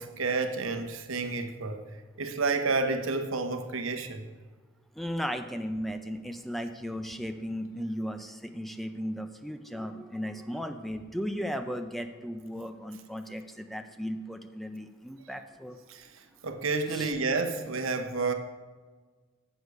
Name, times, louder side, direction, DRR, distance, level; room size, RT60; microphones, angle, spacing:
voice 1, 0.0-1.9 2.2-4.2 15.9-18.3, right 3 dB, 75° right, 0.8 m, -30 dB
voice 2, 4.9-15.8 16.9-17.1, equal, ahead, 0.4 m, -36 dB
8.1 x 6.7 x 4.7 m
head